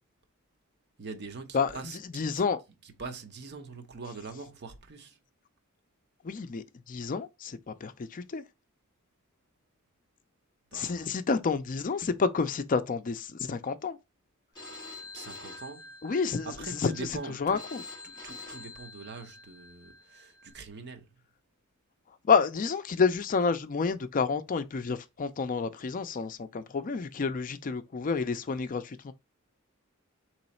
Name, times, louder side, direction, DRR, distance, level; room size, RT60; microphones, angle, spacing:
voice 1, 1.0-2.4 2.8-5.2 10.7-11.1 15.1-15.9 16.4-17.6 18.0-21.1, right 4 dB, 50° right, 0.8 m, -43 dB
voice 2, 2.1-2.6 6.2-8.4 10.7-14.0 16.0-17.1 17.4-17.8 22.2-29.1, left 5 dB, 40° left, 0.4 m, -29 dB
Telephone, 14.6-20.5, left 3 dB, 20° left, 2.0 m, -47 dB
4.0 x 3.1 x 4.1 m
head